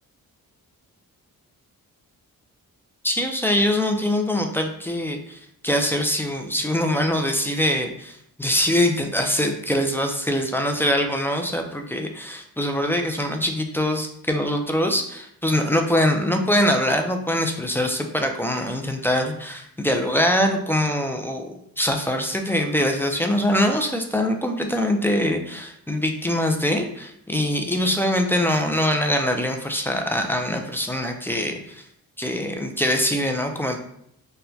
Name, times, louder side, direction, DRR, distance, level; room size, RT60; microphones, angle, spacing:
voice 1, 3.0-31.9 32.2-33.8, left 1 dB, 5° left, 4 dB, 0.3 m, -23 dB
4.3 x 2.2 x 2.6 m, 0.70 s
cardioid pair, 95°, 36 cm